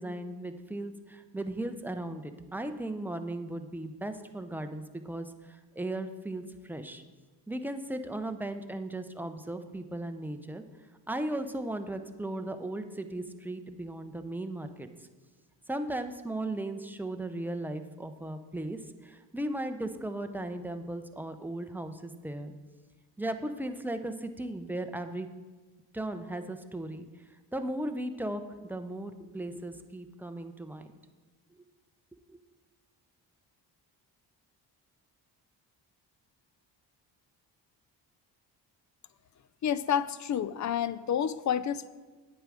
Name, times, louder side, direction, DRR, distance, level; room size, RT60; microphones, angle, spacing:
voice 1, 0.0-7.0 7.5-10.6 11.1-14.9 15.7-22.5 23.2-25.3 25.9-27.1 27.5-28.4 28.7-30.9 32.1-32.2, right 1 dB, 5° right, 7 dB, 0.6 m, -36 dB
voice 2, 39.6-41.9, left 9 dB, 40° left, 16 dB, 0.5 m, -29 dB
8.9 x 7.6 x 4.9 m, 1.3 s
cardioid pair, 70°, 44 cm